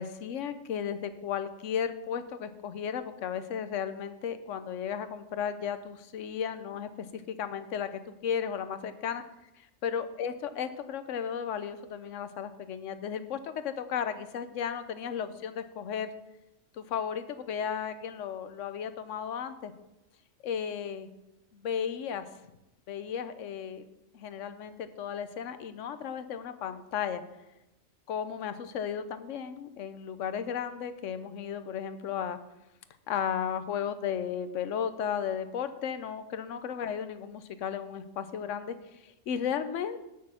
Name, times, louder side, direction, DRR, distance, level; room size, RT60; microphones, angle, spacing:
voice 1, 0.0-9.2 9.8-16.1 16.7-19.7 20.4-21.1 21.5-22.3 22.9-23.9 24.1-27.2 28.1-32.4 33.1-40.0, left 8 dB, 80° left, 11 dB, 1.0 m, -34 dB
6.4 x 6.2 x 7.2 m, 0.93 s
omnidirectional pair, 1.3 m